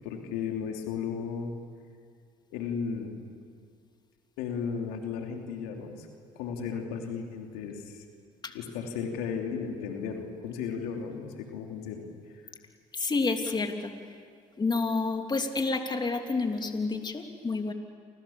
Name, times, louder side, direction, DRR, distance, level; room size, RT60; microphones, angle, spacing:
voice 1, 0.0-1.5 2.5-3.2 4.4-6.1 6.3-8.0 8.5-12.0 12.4-12.5, left 6 dB, 85° left, 3 dB, 3.0 m, -35 dB
voice 2, 12.9-13.9 14.6-17.7, left 3 dB, 30° left, 5 dB, 2.9 m, -29 dB
29.0 x 26.5 x 7.2 m, 2.2 s
supercardioid pair, 70°, 15 cm